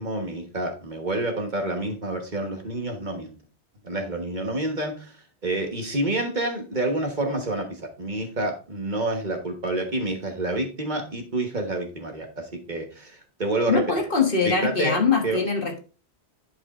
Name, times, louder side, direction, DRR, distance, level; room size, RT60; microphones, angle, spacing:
voice 1, 0.0-3.4 3.8-5.1 5.4-13.9 14.4-15.0 15.2-15.4, right 2 dB, 45° right, 3 dB, 1.4 m, -28 dB
voice 2, 13.7-15.8, left 5 dB, 55° left, 3 dB, 1.6 m, -22 dB
11.5 x 4.9 x 2.5 m, 0.34 s
omnidirectional pair, 1.1 m